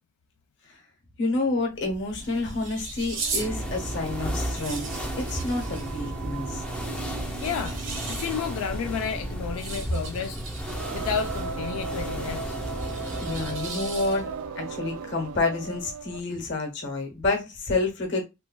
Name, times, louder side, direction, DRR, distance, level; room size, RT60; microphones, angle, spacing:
voice 1, 1.2-4.8 5.2-6.6 13.2-14.3 14.6-18.2, left 2 dB, 55° left, 0.9 m, -29 dB
sound 1, 1.7-14.4, right 3 dB, 60° right, 0.8 m, -38 dB
Singing, 3.1-16.3, right 5 dB, 80° right, 0.3 m, -38 dB
sound 2, 3.4-13.7, equal, 5° left, 0.4 m, -34 dB
voice 2, 7.4-7.7 8.1-10.4 10.9-12.6, left 7 dB, 85° left, 0.3 m, -31 dB
3.2 x 2.3 x 2.2 m
head